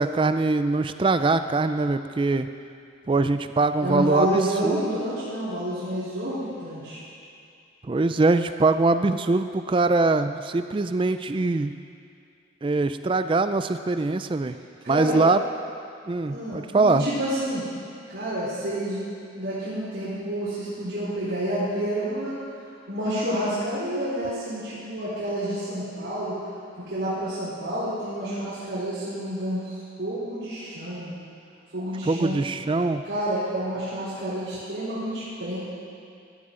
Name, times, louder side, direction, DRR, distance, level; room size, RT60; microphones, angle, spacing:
voice 1, 0.0-2.5 3.1-4.3 4.6-5.0 7.9-11.7 12.6-14.6 14.9-15.4 16.1-17.1 32.0-33.0, right 3 dB, 25° right, 10 dB, 0.3 m, -22 dB
voice 2, 3.8-7.0 14.8-15.2 16.3-17.6 18.1-19.0 19.3-22.4 22.9-26.3 26.8-29.7 30.0-31.1 31.7-32.3 33.0-35.6, right 1 dB, 70° right, -13 dB, 3.7 m, -29 dB
15.0 x 12.0 x 3.8 m, 2.4 s
head